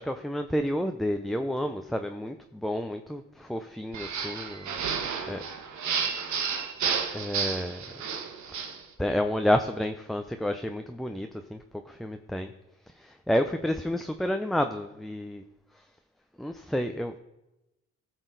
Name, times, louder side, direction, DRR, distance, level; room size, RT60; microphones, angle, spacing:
voice 1, 0.0-4.8 5.3-5.4 7.1-7.8 8.5-12.5 12.9-15.4 15.7-15.8 16.4-17.1, left 1 dB, ahead, 6 dB, 0.5 m, -30 dB
sound 1, 3.9-8.8, right 6 dB, 70° right, 1.2 m, -31 dB
15.0 x 6.2 x 3.9 m, 0.95 s
cardioid pair, 90°, 30 cm